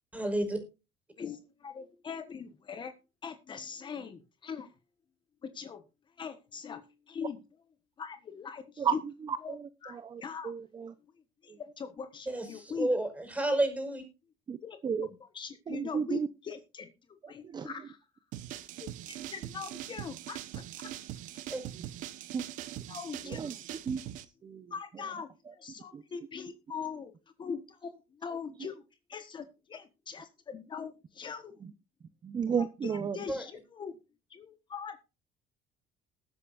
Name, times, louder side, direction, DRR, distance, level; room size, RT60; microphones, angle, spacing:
voice 1, 0.1-0.6 12.3-14.0 21.5-21.6 33.3-33.4, right 1 dB, 10° right, 7 dB, 5.4 m, -30 dB
voice 2, 1.2-2.9 3.2-4.7 5.4-5.8 6.2-7.4 8.0-9.0 9.4-9.6 9.8-10.5 11.4-12.9 14.6-16.9 17.3-18.0 18.8-20.9 22.9-23.6 24.7-27.1 27.4-31.6 32.6-34.0 34.3-35.0, left 6 dB, 35° left, 9 dB, 1.3 m, -41 dB
voice 3, 9.3-10.9 14.5-14.6 14.8-15.1 15.7-16.3 17.4-17.7 21.7-21.9 22.3-22.5 23.3-23.5 23.9-24.0 24.4-24.7 25.9-26.0 32.2-33.2, right 7 dB, 30° right, 11 dB, 0.9 m, -33 dB
sound 1, 18.3-24.2, right 13 dB, 70° right, 1.1 m, -42 dB
20.5 x 8.3 x 2.6 m, 0.28 s
cardioid pair, 110°, 14 cm